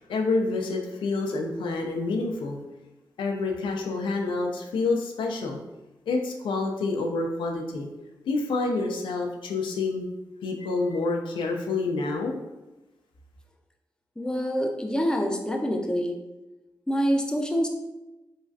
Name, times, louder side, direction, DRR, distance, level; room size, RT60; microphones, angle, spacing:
voice 1, 0.0-2.6 3.2-5.6 6.1-7.9 8.3-10.1 10.4-12.4, left 3 dB, 85° left, 2 dB, 0.4 m, -28 dB
voice 2, 14.2-16.1 16.9-17.7, equal, 10° left, 2 dB, 0.5 m, -26 dB
3.1 x 2.3 x 2.6 m, 1.0 s
cardioid pair, 45°, 8 cm